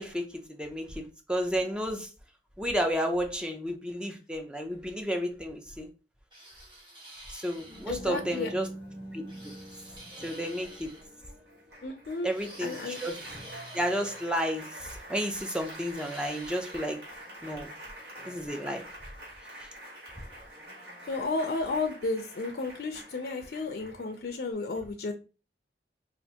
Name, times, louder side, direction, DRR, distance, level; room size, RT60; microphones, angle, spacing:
voice 1, 0.0-2.1 2.6-5.9 7.3-8.7 9.1-9.2 10.2-10.9 12.2-13.2 13.7-17.0 17.4-17.7 18.3-18.8 19.6-19.7, equal, 5° right, 4 dB, 0.4 m, -32 dB
sound 1, 6.3-7.9 9.3-11.0 12.3-14.3 15.2-16.9, right 1 dB, 30° right, 1.1 m, -49 dB
Applause, 7.6-24.5, right 1 dB, 70° right, 1.2 m, -46 dB
voice 2, 7.9-8.5 11.8-12.3 12.6-13.0 21.1-25.1, left 3 dB, 60° left, 5 dB, 0.4 m, -32 dB
3.3 x 2.4 x 2.7 m, 0.32 s
head